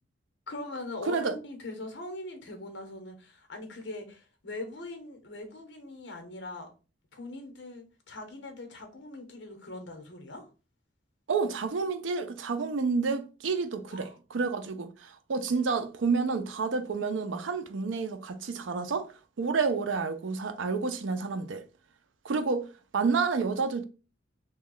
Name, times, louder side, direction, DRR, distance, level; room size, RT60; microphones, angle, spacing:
voice 1, 0.5-6.7 7.1-10.5 13.9-14.2, left 2 dB, 70° left, 0.9 m, -41 dB
voice 2, 1.0-1.3 11.3-21.6 22.2-22.7 22.9-23.8, right 4 dB, 85° right, 0.5 m, -29 dB
3.1 x 2.3 x 3.7 m
head